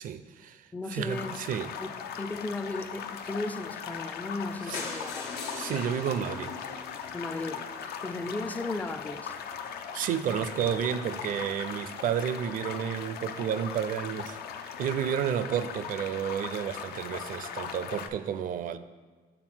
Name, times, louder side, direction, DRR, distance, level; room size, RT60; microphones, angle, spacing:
voice 1, 0.0-1.7 4.7-4.8 5.5-6.5 9.9-18.8, right 9 dB, 55° right, 0.4 m, -31 dB
voice 2, 0.7-1.4 1.8-1.9 2.2-5.2 7.1-9.4, left 2 dB, 10° left, 0.4 m, -35 dB
sound 1, 1.1-18.1, left 7 dB, 70° left, 0.5 m, -39 dB
sound 2, 4.7-8.6 9.3-9.4 9.6-9.7 10.0-10.1 10.3-10.4, left 4 dB, 85° left, 1.4 m, -41 dB
6.0 x 4.2 x 6.0 m
cardioid pair, 110°, 17 cm